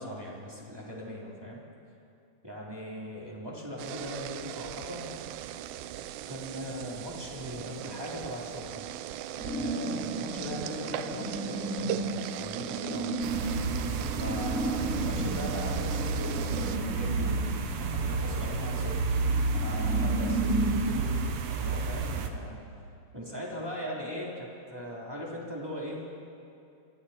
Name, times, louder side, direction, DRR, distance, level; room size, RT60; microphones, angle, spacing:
voice 1, 0.0-1.6 2.4-5.1 6.3-9.0 9.4-13.2 14.1-17.4 17.7-19.0 19.5-21.2 21.5-22.6 23.1-26.0, equal, 5° right, -4 dB, 2.9 m, -39 dB
sound 1, 3.8-16.8, right 12 dB, 80° right, 2.4 m, -39 dB
sound 2, 9.4-20.8, right 1 dB, 60° left, 9.0 m, -34 dB
sound 3, 13.2-22.3, right 4 dB, 65° right, 1.7 m, -31 dB
27.5 x 23.0 x 4.4 m, 2.6 s
omnidirectional pair, 4.2 m